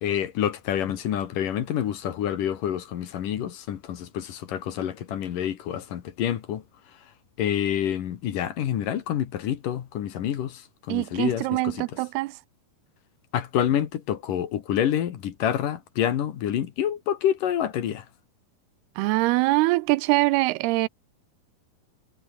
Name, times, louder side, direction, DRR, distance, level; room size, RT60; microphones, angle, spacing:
voice 1, 0.0-6.6 7.4-10.6 10.9-11.8 13.3-18.0, left 10 dB, 60° left, 3.0 m, -27 dB
voice 2, 10.9-12.4 19.0-20.9, right 21 dB, 85° right, 2.6 m, -23 dB
omnidirectional pair, 4.6 m